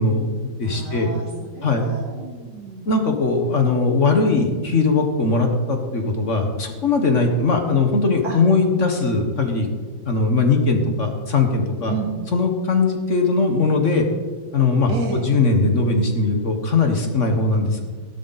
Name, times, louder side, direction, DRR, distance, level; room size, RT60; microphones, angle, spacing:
voice 1, 0.0-1.1 1.6-1.8 2.9-9.7 10.1-11.9 12.3-14.1 14.5-17.8, left 3 dB, 40° left, 4 dB, 1.6 m, -20 dB
voice 2, 0.6-2.9 8.2-8.4 11.9-12.1 14.9-15.3, right 4 dB, 55° right, 0 dB, 3.0 m, -31 dB
16.5 x 11.5 x 4.2 m, 1.5 s
omnidirectional pair, 2.1 m